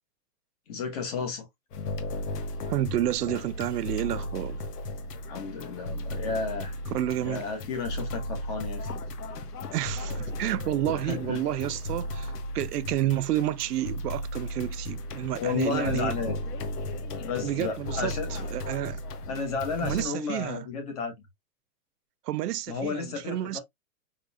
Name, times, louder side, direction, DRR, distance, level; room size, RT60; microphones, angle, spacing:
voice 1, 0.7-1.5 5.3-6.7 7.2-8.9 11.1-11.4 15.3-16.4 17.2-18.5 19.3-21.1 22.7-23.6, left 5 dB, 25° left, 1.0 m, -32 dB
sound 1, 1.7-20.1, left 1 dB, 80° left, 1.3 m, -35 dB
voice 2, 2.7-4.6 6.9-7.4 9.7-16.1 17.4-19.0 19.8-20.7 22.2-23.6, right 13 dB, 80° right, 0.6 m, -30 dB
5.2 x 3.8 x 2.2 m
hypercardioid pair, 175°, 47 cm